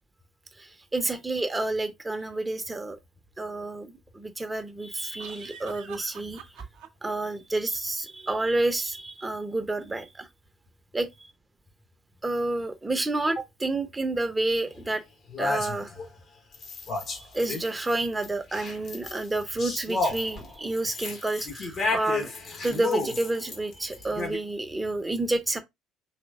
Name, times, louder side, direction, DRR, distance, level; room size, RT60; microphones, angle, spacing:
voice 1, 0.6-3.0 3.4-6.5 7.0-10.3 10.9-11.1 12.2-15.0 15.4-15.9 17.3-22.3 22.6-25.6, right 2 dB, 15° right, 0.8 m, -29 dB
sound 1, 2.2-2.3 5.2-7.1, right 9 dB, 60° right, 0.8 m, -45 dB
sound 2, 14.7-14.8 15.3-16.1 16.5-17.9 18.2-24.4, left 3 dB, 40° left, 1.2 m, -32 dB
5.0 x 3.2 x 2.5 m
figure-of-eight pair, 55°, 0 cm